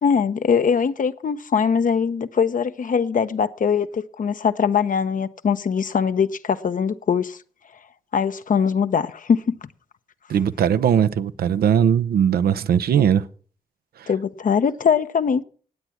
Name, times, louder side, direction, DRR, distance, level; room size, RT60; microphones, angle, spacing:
voice 1, 0.0-7.4 8.1-9.6 14.1-15.4, left 6 dB, 55° left, 0.9 m, -21 dB
voice 2, 10.3-13.2 14.0-14.1, right 8 dB, 75° right, 0.7 m, -19 dB
16.0 x 9.0 x 6.0 m
supercardioid pair, 45°, 16 cm